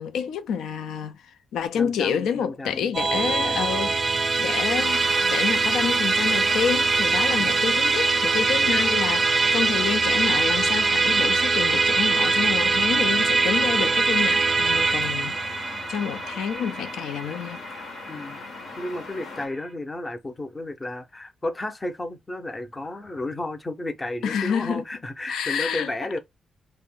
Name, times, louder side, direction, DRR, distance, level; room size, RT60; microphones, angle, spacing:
voice 1, 0.0-15.4 15.9-17.6 24.2-24.8 25.3-25.9, left 7 dB, 90° left, 0.4 m, -28 dB
voice 2, 1.8-4.2 7.4-7.6 18.1-18.4 18.8-26.2, left 2 dB, 20° left, 0.6 m, -33 dB
Musical instrument, 2.9-18.5, right 4 dB, 35° right, 0.4 m, -22 dB
sound 1, 4.7-19.5, left 4 dB, 70° left, 0.7 m, -39 dB
2.5 x 2.0 x 3.5 m
cardioid pair, 105°, 0 cm